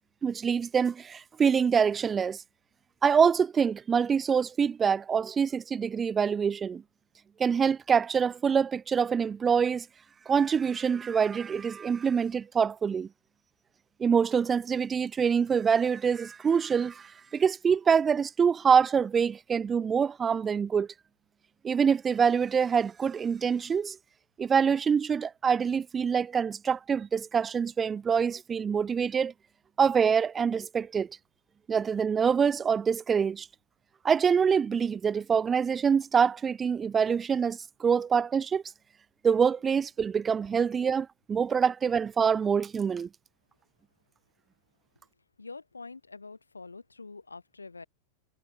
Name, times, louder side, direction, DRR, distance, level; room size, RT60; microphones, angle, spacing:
voice 1, 0.2-2.4 3.0-6.8 7.4-9.9 10.3-13.1 14.0-20.9 21.6-24.0 24.4-29.3 29.8-31.1 31.7-33.5 34.0-38.6 39.2-43.1, right 6 dB, 20° right, 0.5 m, -25 dB
voice 2, 45.4-47.9, left 4 dB, 80° left, 6.5 m, -45 dB
figure-of-eight pair, 90°, 0 cm